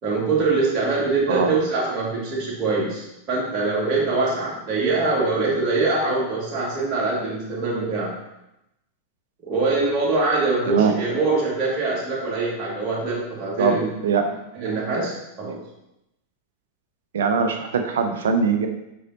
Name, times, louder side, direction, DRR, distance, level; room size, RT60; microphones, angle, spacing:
voice 1, 0.0-8.1 9.4-13.9 14.5-15.6, right 3 dB, 30° right, -5 dB, 2.5 m, -23 dB
voice 2, 17.1-18.7, right 5 dB, 60° right, 6 dB, 0.8 m, -21 dB
8.1 x 5.4 x 3.0 m, 0.88 s
figure-of-eight pair, 90°, 0 cm